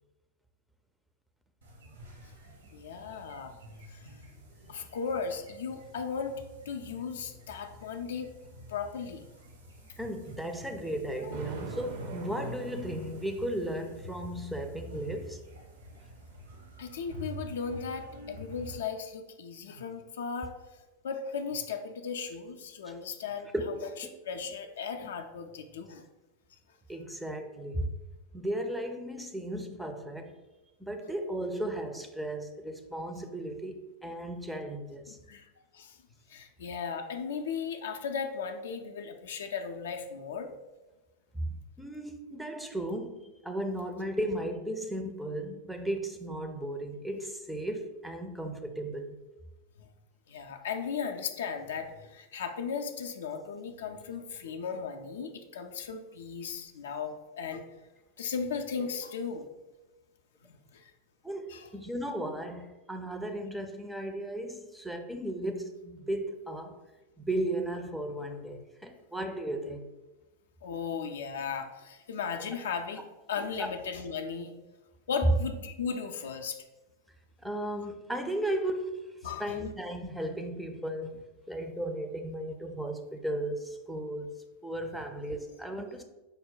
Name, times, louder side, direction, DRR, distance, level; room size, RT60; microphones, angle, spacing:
sound 1, 1.6-18.8, equal, 70° right, 0.9 m, -48 dB
voice 1, 2.7-3.5 3.9-4.1 4.6-6.3 6.7-8.3 8.7-9.3 11.2-11.3 16.8-20.5 21.0-23.5 24.3-26.0 35.1-35.5 35.7-36.0 36.3-40.5 49.8-49.9 50.3-57.7 58.2-59.5 60.5-60.9 61.5-61.7 70.6-73.0 73.3-74.6 75.1-76.6 79.2-79.6, left 6 dB, 60° left, 6 dB, 0.4 m, -36 dB
voice 2, 10.0-15.4 23.5-24.1 25.0-25.1 26.9-27.9 28.3-30.3 30.8-35.2 41.3-49.2 61.2-66.8 67.2-69.9 73.6-73.7 77.4-81.1 81.5-86.0, right 1 dB, ahead, 4 dB, 0.4 m, -35 dB
Thunder, 11.3-13.8, right 3 dB, 55° right, 0.5 m, -41 dB
5.3 x 2.1 x 3.8 m, 1.1 s
figure-of-eight pair, 90°, 0 cm